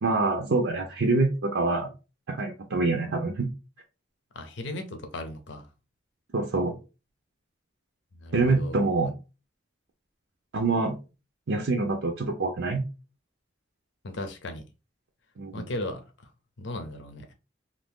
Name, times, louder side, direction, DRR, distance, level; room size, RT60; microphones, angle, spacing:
voice 1, 0.0-1.9 2.3-3.5 6.3-6.7 8.3-9.1 10.5-11.0 11.5-12.8 15.4-15.6, right 3 dB, 75° right, 0.6 m, -25 dB
voice 2, 4.3-5.7 8.1-9.1 14.0-14.6 15.5-16.3 16.6-17.3, left 1 dB, 65° left, 0.7 m, -37 dB
2.8 x 2.6 x 3.5 m
head